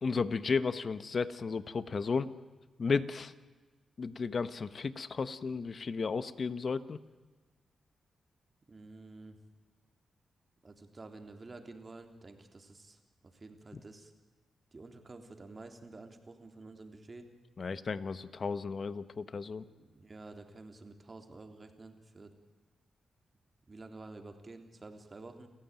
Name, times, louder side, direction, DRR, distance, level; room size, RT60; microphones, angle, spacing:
voice 1, 0.0-2.3 2.8-3.3 4.0-7.0 17.6-19.6, left 5 dB, 50° left, 14 dB, 1.2 m, -33 dB
voice 2, 8.7-9.4 10.6-13.0 13.2-14.1 14.7-17.3 19.7-22.3 23.7-25.5, right 3 dB, 35° right, 6 dB, 3.5 m, -50 dB
29.0 x 15.5 x 9.2 m, 1.3 s
cardioid pair, 65°, 0 cm